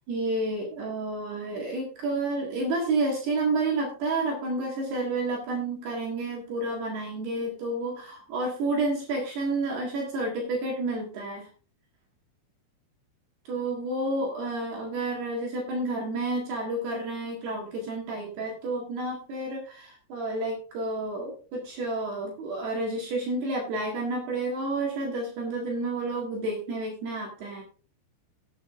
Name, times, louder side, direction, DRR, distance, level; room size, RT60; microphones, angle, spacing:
voice 1, 0.0-11.5 13.5-27.6, right 2 dB, 65° right, -2 dB, 3.7 m, -30 dB
18.0 x 8.8 x 2.5 m, 0.39 s
omnidirectional pair, 5.2 m